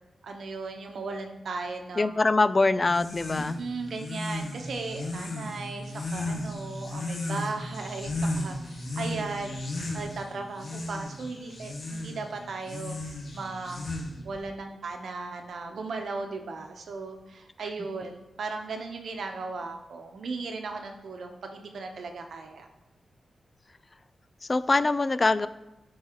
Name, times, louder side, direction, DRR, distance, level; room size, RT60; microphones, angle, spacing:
voice 1, 0.2-2.2 3.4-9.6 9.9-13.8 14.2-22.7, right 3 dB, 75° right, 4 dB, 0.9 m, -37 dB
voice 2, 2.0-3.6 24.5-25.5, left 3 dB, 30° left, 14 dB, 0.3 m, -23 dB
sound 1, 2.8-14.4, left 1 dB, 60° left, 1.7 m, -35 dB
13.0 x 4.6 x 3.0 m, 0.96 s
wide cardioid pair, 90°, 0 cm